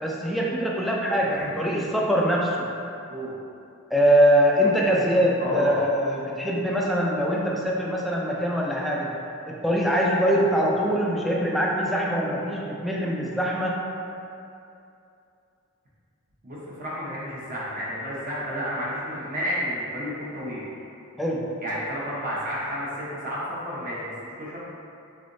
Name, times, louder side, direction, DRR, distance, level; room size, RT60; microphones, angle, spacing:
voice 1, 0.0-2.7 3.9-9.2 9.5-13.9 21.2-21.6, equal, ahead, -3 dB, 0.3 m, -23 dB
voice 2, 1.2-1.8 3.1-3.3 5.4-5.8 16.4-20.9 21.6-24.6, equal, 45° right, -7 dB, 0.8 m, -31 dB
3.7 x 3.3 x 2.5 m, 2.6 s
head